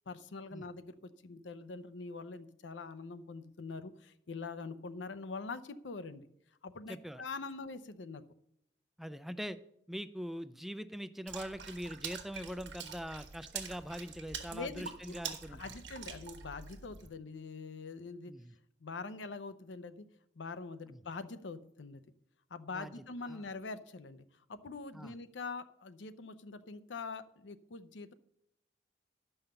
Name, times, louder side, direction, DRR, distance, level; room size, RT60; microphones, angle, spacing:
voice 1, 0.1-6.3 6.6-8.2 14.5-15.2 15.5-18.3 18.8-20.0 20.4-22.0 22.5-24.2 24.5-28.1, left 4 dB, 90° left, 12 dB, 0.7 m, -44 dB
voice 2, 6.9-7.2 9.0-9.6 9.9-15.7 18.3-18.5 20.9-21.0 22.7-22.9 23.3-23.4 24.9-25.1, equal, ahead, 13 dB, 0.3 m, -42 dB
Water / Splash splatter, 11.3-17.1, right 6 dB, 75° right, 1.3 m, -45 dB
11.5 x 5.6 x 6.7 m, 0.77 s
head